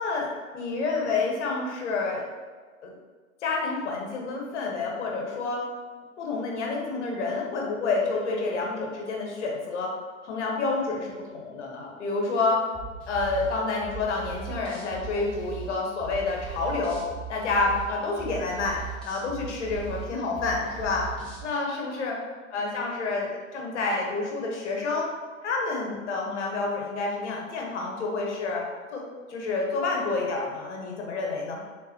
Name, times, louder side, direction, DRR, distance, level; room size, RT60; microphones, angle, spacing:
voice 1, 0.0-2.2 2.8-2.9 3.4-5.7 6.2-9.9 10.2-12.6 13.1-17.0 17.3-21.1 21.4-22.2 22.5-25.1 25.4-28.6 28.9-29.0 29.3-31.6, left 3 dB, 55° left, -1 dB, 1.2 m, -29 dB
sound 1, 12.7-21.5, right 7 dB, ahead, 0.8 m, -39 dB
3.8 x 3.6 x 2.8 m, 1.5 s
hypercardioid pair, 130°, 41 cm